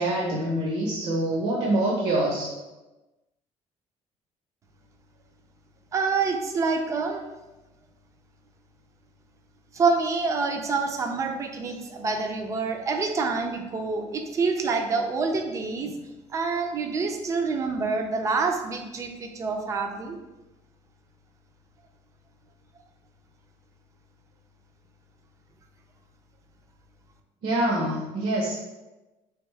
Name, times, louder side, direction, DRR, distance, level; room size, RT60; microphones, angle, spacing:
voice 1, 0.0-2.5 27.4-28.6, right 1 dB, 65° right, -3 dB, 0.8 m, -25 dB
voice 2, 5.9-7.2 9.7-15.9 16.3-20.2, right 4 dB, 25° right, 4 dB, 0.4 m, -27 dB
3.5 x 3.4 x 3.2 m, 1.1 s
cardioid pair, 170°, 12 cm